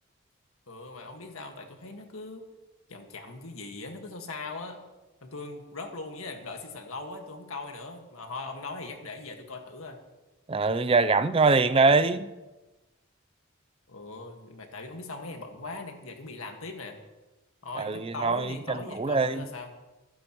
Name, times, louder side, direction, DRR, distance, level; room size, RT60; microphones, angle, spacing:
voice 1, 0.7-2.4 2.9-4.8 5.2-10.0 13.9-17.0 17.6-19.7, left 3 dB, 85° left, 4 dB, 1.7 m, -40 dB
voice 2, 10.5-12.3 17.8-19.5, right 3 dB, 25° right, 13 dB, 0.4 m, -23 dB
26.5 x 9.6 x 3.1 m, 1.1 s
head